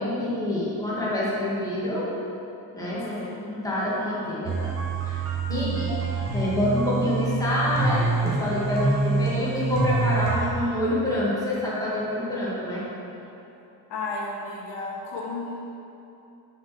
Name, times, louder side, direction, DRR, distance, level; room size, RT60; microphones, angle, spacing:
voice 1, 0.0-2.1 2.7-4.6 5.0-5.2 5.5-5.9 6.3-12.8, left 1 dB, 10° left, -8 dB, 2.0 m, -27 dB
voice 2, 3.1-3.4 5.5-6.0 13.9-15.6, left 3 dB, 85° left, -3 dB, 1.8 m, -33 dB
sound 1, 4.4-10.5, right 3 dB, 30° right, 1.8 m, -26 dB
6.9 x 6.3 x 6.0 m, 2.9 s
cardioid pair, 160°, 41 cm